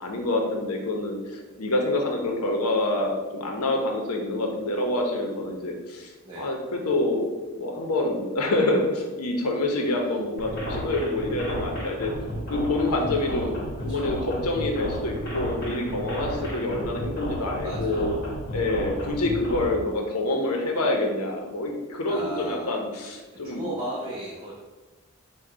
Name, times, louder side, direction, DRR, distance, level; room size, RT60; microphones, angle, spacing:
voice 1, 0.0-12.1 12.5-18.1 18.5-23.7, left 2 dB, 85° left, 2 dB, 0.8 m, -27 dB
voice 2, 9.7-10.3 12.9-13.6 13.9-14.1 16.2-16.5 17.6-18.1 22.1-22.8 23.4-24.5, right 1 dB, 20° right, -6 dB, 0.6 m, -37 dB
sound 1, 10.4-19.7, equal, 45° left, 1.1 m, -32 dB
4.8 x 2.3 x 4.6 m, 1.2 s
head